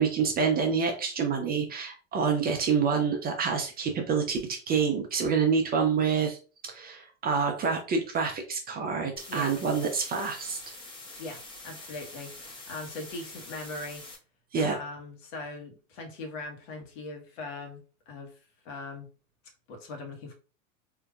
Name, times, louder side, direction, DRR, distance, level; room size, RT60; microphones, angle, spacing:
voice 1, 0.0-6.4 6.6-10.6 14.5-14.8, right 5 dB, 25° right, 4 dB, 0.5 m, -27 dB
sound 1, 9.2-14.2, left 2 dB, 10° left, 0.8 m, -45 dB
voice 2, 11.6-14.0 14.6-18.3 18.6-19.1 19.7-20.3, left 3 dB, 65° left, 3 dB, 1.3 m, -40 dB
3.7 x 2.6 x 2.3 m, 0.36 s
hypercardioid pair, 100°, 42 cm